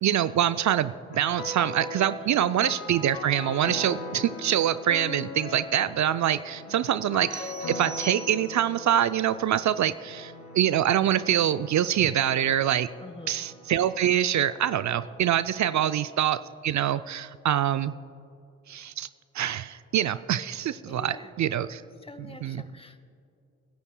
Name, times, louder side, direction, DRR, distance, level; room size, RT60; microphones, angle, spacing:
voice 1, 0.0-12.9 13.3-17.9 18.7-19.1 19.3-21.8 22.4-22.6, right 10 dB, 55° right, 13 dB, 0.5 m, -25 dB
sound 1, 1.1-16.1, left 2 dB, 85° left, 1.9 m, -41 dB
sound 2, 7.3-8.8, right 3 dB, 35° right, 1.4 m, -41 dB
voice 2, 13.0-13.4 15.7-15.9 20.9-21.3 22.0-23.0, left 2 dB, 15° left, 10 dB, 1.0 m, -46 dB
29.0 x 10.5 x 2.2 m, 2.4 s
hypercardioid pair, 40°, 36 cm